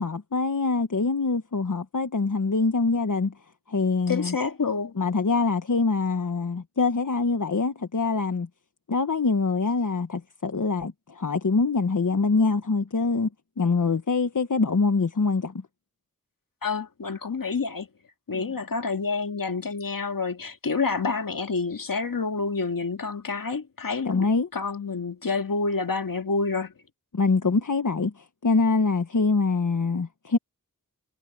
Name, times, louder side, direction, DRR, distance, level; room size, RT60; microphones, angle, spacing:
voice 1, 0.0-3.3 3.7-4.3 4.9-8.5 8.9-13.3 13.6-15.5 18.3-18.5 24.0-24.5 27.1-30.4, left 4 dB, 65° left, 1.5 m, -24 dB
voice 2, 4.1-4.9 16.6-17.9 18.3-26.7, left 4 dB, 85° left, 2.1 m, -28 dB
wide cardioid pair, 50°, 33 cm